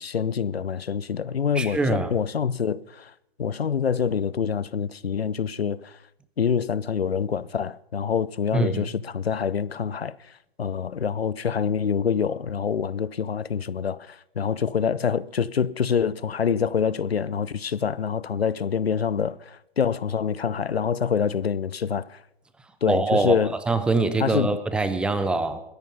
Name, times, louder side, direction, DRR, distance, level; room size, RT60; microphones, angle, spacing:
voice 1, 0.0-3.1 3.4-6.0 6.4-10.3 10.6-22.2 22.8-23.6 24.2-24.6, left 7 dB, 80° left, 0.6 m, -26 dB
voice 2, 1.6-2.1 8.5-8.8 22.9-23.4 23.7-25.6, right 3 dB, 5° right, 0.5 m, -23 dB
21.0 x 10.5 x 5.5 m
figure-of-eight pair, 120°, 30 cm